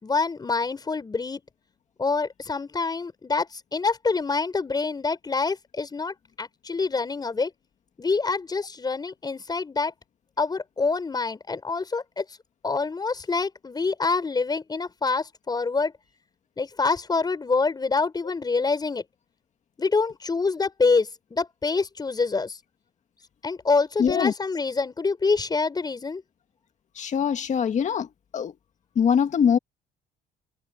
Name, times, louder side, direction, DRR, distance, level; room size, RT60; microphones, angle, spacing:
voice 1, 0.0-1.4 2.0-7.5 8.0-9.9 10.4-12.2 12.6-15.9 16.6-19.0 19.8-22.6 23.4-26.2, left 4 dB, 25° left, 6.0 m, -26 dB
voice 2, 24.0-24.3 27.0-28.1 28.3-28.5 29.0-29.6, left 7 dB, 45° left, 2.0 m, -22 dB
cardioid pair, 110°, 17 cm